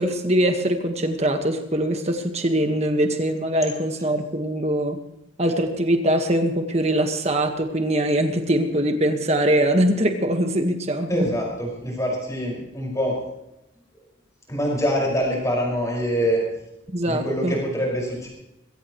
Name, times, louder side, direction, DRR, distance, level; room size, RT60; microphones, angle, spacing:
voice 1, 0.0-5.0 5.4-11.2 16.9-17.6, right 1 dB, 30° right, 5 dB, 1.6 m, -22 dB
voice 2, 11.1-13.2 14.5-16.4 17.1-18.3, equal, 15° left, -3 dB, 5.8 m, -25 dB
21.5 x 17.0 x 3.2 m, 0.87 s
head